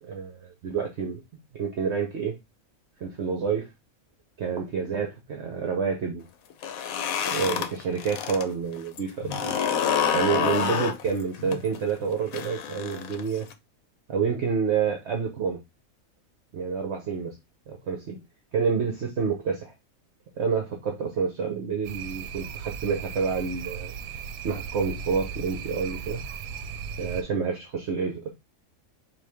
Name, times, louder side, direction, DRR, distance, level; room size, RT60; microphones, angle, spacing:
voice 1, 0.0-1.2 1.6-2.3 3.0-3.7 4.4-6.3 7.2-9.5 10.1-13.5 14.1-15.6 16.5-17.4 17.7-18.2 18.5-19.7 20.4-23.9 24.4-26.2 27.0-28.3, right 6 dB, 60° right, 1.0 m, -28 dB
sound 1, 6.5-8.5 8.8-13.5, left 7 dB, 80° left, 1.0 m, -28 dB
sound 2, 21.8-27.2, right 6 dB, 80° right, 1.0 m, -37 dB
4.6 x 2.7 x 3.4 m
omnidirectional pair, 1.5 m